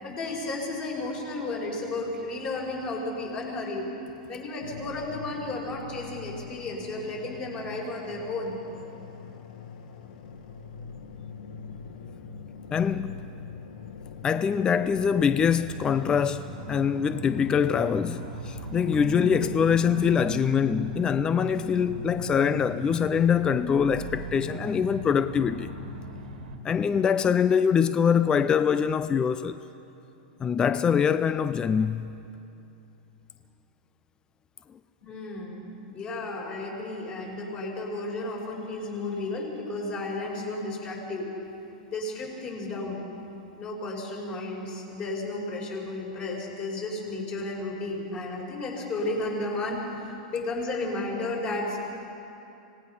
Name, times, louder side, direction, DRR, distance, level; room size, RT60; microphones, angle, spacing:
voice 1, 0.0-3.9 4.3-8.6 35.0-41.3 41.9-43.0 43.6-51.8, left 2 dB, 35° left, 5.3 m, -33 dB
sound 1, 4.6-22.6, left 5 dB, 75° left, 1.5 m, -43 dB
voice 2, 12.7-13.2 14.2-25.7 26.6-29.6 30.4-32.2, left 7 dB, 15° left, 0.4 m, -24 dB
sound 2, 14.7-26.6, right 4 dB, 85° right, 2.0 m, -39 dB
26.0 x 18.5 x 5.6 m
supercardioid pair, 140°, 4 cm